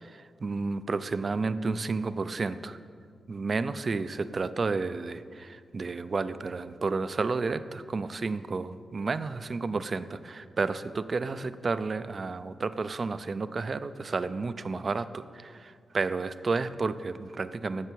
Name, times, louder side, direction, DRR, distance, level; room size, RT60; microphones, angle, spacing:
voice 1, 0.0-2.8 3.3-17.9, right 4 dB, 40° right, 13 dB, 0.4 m, -31 dB
15.0 x 6.7 x 4.6 m, 2.1 s
wide cardioid pair, 135°, 0 cm